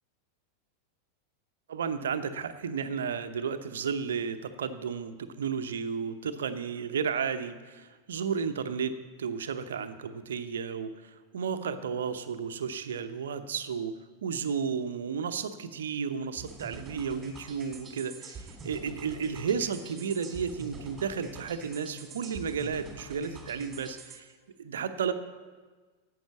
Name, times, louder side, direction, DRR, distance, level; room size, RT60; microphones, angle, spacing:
voice 1, 1.7-24.3 24.6-25.1, right 6 dB, 65° right, 9 dB, 0.8 m, -33 dB
sound 1, 16.4-24.2, right 3 dB, 20° right, 2.4 m, -46 dB
11.5 x 8.0 x 7.1 m, 1.4 s
figure-of-eight pair, 90°, 0 cm